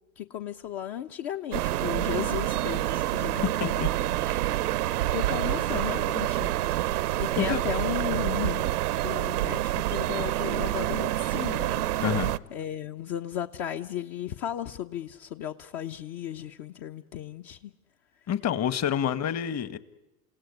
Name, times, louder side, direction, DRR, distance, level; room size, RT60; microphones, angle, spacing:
voice 1, 0.2-3.8 4.2-4.4 4.7-6.5 7.2-8.7 9.0-11.8 12.5-17.7 18.9-19.0, left 11 dB, 55° left, 4 dB, 1.2 m, -35 dB
sound 1, 1.5-12.4, right 14 dB, 85° right, 0.8 m, -27 dB
voice 2, 3.4-3.9 7.4-7.6 12.0-12.3 18.3-19.8, left 9 dB, 35° left, 16 dB, 1.4 m, -28 dB
29.0 x 17.0 x 9.7 m, 0.95 s
hypercardioid pair, 100°, 44 cm